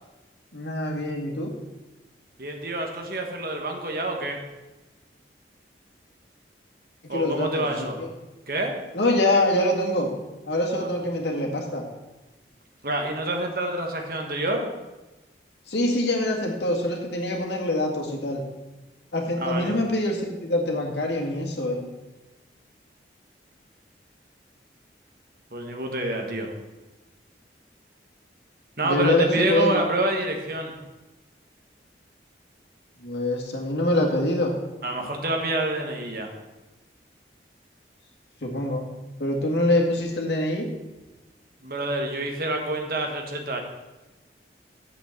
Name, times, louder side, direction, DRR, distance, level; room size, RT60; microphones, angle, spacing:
voice 1, 0.5-1.5 7.1-8.1 8.9-10.1 10.5-11.8 15.7-18.4 19.1-21.9 28.8-29.8 33.0-34.5 38.4-38.9 39.2-40.7, left 1 dB, 70° left, 1 dB, 2.0 m, -25 dB
voice 2, 2.4-4.4 7.1-8.0 8.5-8.8 10.8-10.9 12.8-14.7 19.4-19.7 25.5-26.5 28.8-30.7 34.8-36.3 41.6-43.6, right 1 dB, 50° right, 3 dB, 1.5 m, -27 dB
7.7 x 6.2 x 7.8 m, 1.1 s
head